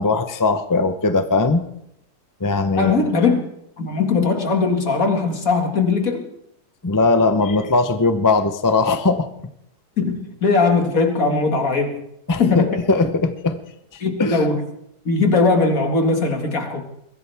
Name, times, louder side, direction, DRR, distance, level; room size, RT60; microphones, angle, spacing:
voice 1, 0.0-1.6 2.4-2.9 6.8-9.3 12.3-13.6 14.2-14.4, left 3 dB, 20° left, 8 dB, 0.5 m, -19 dB
voice 2, 2.8-3.4 3.8-6.2 10.0-12.0 12.4-12.8 14.0-14.6 15.1-16.8, left 4 dB, 60° left, 4 dB, 2.4 m, -19 dB
22.5 x 15.5 x 3.5 m, 0.76 s
omnidirectional pair, 1.6 m